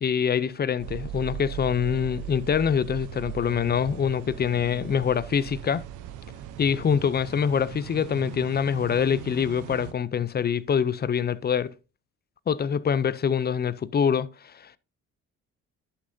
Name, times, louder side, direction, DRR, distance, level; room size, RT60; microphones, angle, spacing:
voice 1, 0.0-5.8 6.6-11.7 12.5-14.8, left 7 dB, 35° left, 0.6 m, -25 dB
sound 1, 0.8-9.9, right 12 dB, 90° right, 0.8 m, -39 dB
11.0 x 6.4 x 2.7 m
cardioid pair, 90°, 30 cm